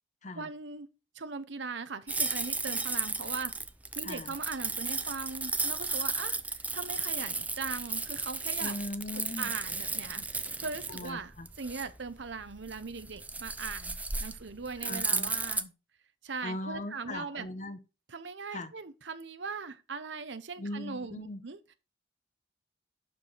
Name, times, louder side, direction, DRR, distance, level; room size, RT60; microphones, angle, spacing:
voice 1, 0.3-0.9 1.1-3.5 4.0-8.7 9.1-15.7 16.2-17.5 18.1-21.6, right 4 dB, 75° right, 0.9 m, -40 dB
sound 1, 2.1-15.6, right 3 dB, 10° right, 0.5 m, -34 dB
voice 2, 4.0-4.3 8.6-9.5 10.9-11.5 14.8-15.3 16.4-17.8 18.5-18.7 20.6-21.4, left 1 dB, 40° left, 0.9 m, -39 dB
12.0 x 4.8 x 4.1 m
head